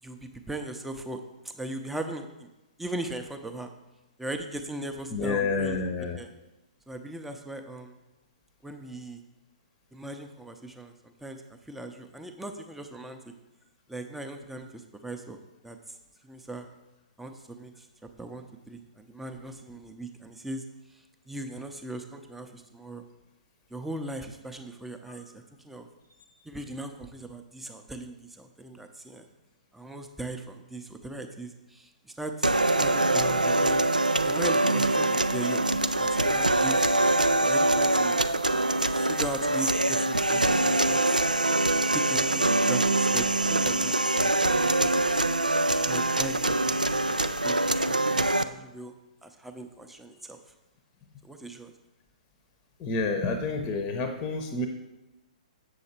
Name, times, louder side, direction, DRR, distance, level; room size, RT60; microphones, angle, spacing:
voice 1, 0.0-1.2 1.5-2.5 2.8-3.7 4.2-6.3 6.9-7.9 8.6-9.2 9.9-13.2 13.9-16.0 16.2-16.7 17.2-17.9 18.2-20.6 20.9-23.0 23.7-25.9 26.4-29.3 29.7-32.5 32.8-33.9 34.2-35.6 35.9-36.8 37.4-38.2 38.9-41.2 41.9-44.7 45.8-47.6 47.8-48.9 49.2-50.4 51.2-51.7, right 2 dB, 5° right, 5 dB, 0.7 m, -39 dB
voice 2, 5.1-6.2 25.1-25.2 52.8-54.7, left 3 dB, 25° left, 5 dB, 0.8 m, -29 dB
sound 1, 32.4-48.4, right 2 dB, 90° right, 0.4 m, -24 dB
8.0 x 6.5 x 4.3 m, 1.0 s
figure-of-eight pair, 120°, 4 cm